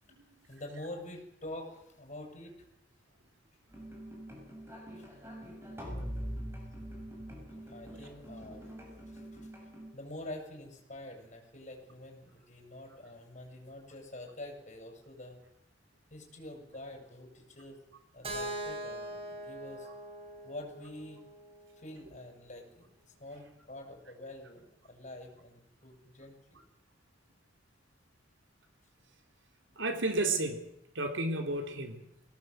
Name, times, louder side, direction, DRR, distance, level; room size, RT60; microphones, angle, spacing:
voice 1, 0.5-2.6 5.0-5.1 5.6-5.8 7.6-8.7 9.1-9.5 9.9-15.4 16.1-17.8 18.1-19.9 20.4-21.2 21.8-26.6, left 1 dB, 40° left, 2 dB, 6.6 m, -46 dB
sound 1, 3.7-9.9, equal, 15° right, 7.6 m, -43 dB
Keyboard (musical), 18.2-22.1, right 1 dB, 30° right, 4.0 m, -42 dB
voice 2, 29.8-30.7 30.9-32.1, right 2 dB, 75° right, 5 dB, 3.8 m, -32 dB
23.0 x 18.0 x 7.9 m, 0.85 s
head